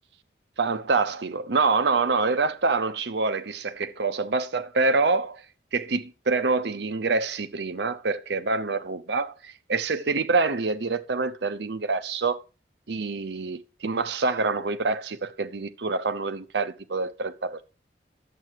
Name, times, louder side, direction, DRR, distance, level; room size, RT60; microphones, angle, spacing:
voice 1, 0.6-5.4 5.7-12.4 12.9-17.6, right 4 dB, 75° right, 0.7 m, -26 dB
11.0 x 7.7 x 4.6 m
head